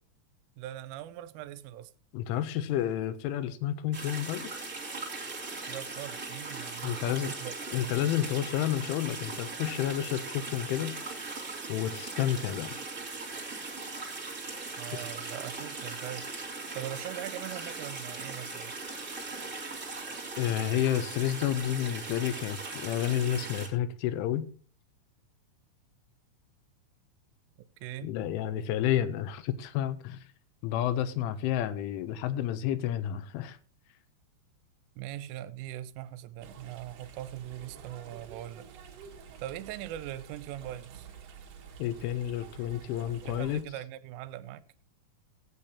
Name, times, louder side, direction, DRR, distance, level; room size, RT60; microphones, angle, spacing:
voice 1, 0.6-1.9 5.7-7.5 7.8-8.1 14.8-16.3 16.7-18.7 27.8-28.2 35.0-38.7 39.4-41.1 43.3-44.6, right 13 dB, 85° right, 3.1 m, -41 dB
voice 2, 2.1-4.7 6.8-7.3 7.7-11.3 11.7-12.7 14.9-15.0 20.4-24.5 28.0-30.2 30.6-33.6 41.8-43.6, left 11 dB, 80° left, 3.1 m, -30 dB
sound 1, 3.9-23.7, right 3 dB, 45° right, 0.9 m, -39 dB
sound 2, 36.4-43.6, right 7 dB, 70° right, 2.1 m, -49 dB
18.5 x 8.3 x 2.8 m
omnidirectional pair, 5.7 m